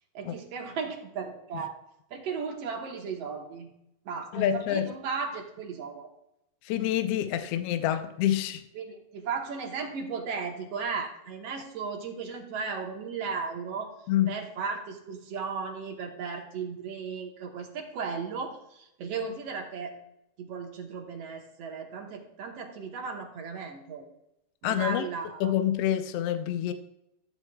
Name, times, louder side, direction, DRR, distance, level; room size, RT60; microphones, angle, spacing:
voice 1, 0.1-1.8 2.1-3.7 4.1-6.1 8.7-13.9 14.3-19.9 20.4-24.0 24.6-25.5, right 5 dB, 65° right, 1.9 m, -35 dB
voice 2, 4.3-4.9 6.6-8.6 14.1-14.3 24.6-25.1 25.4-26.7, left 11 dB, 80° left, 1.4 m, -27 dB
14.5 x 8.8 x 2.3 m
omnidirectional pair, 3.5 m